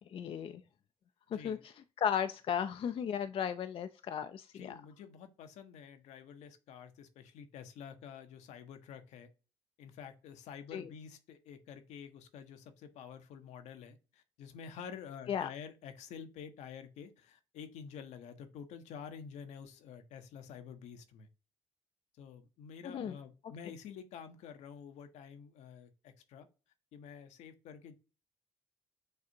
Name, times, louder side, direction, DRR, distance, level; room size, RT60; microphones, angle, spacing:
voice 1, 0.1-0.6 1.3-4.8 10.7-10.9 15.3-15.5 22.8-23.2, left 8 dB, 50° left, 0.4 m, -35 dB
voice 2, 1.3-1.6 4.5-9.3 9.8-21.3 22.2-26.5 26.9-27.9, left 7 dB, 75° left, 0.8 m, -49 dB
6.5 x 2.5 x 2.7 m
supercardioid pair, 60°, 12 cm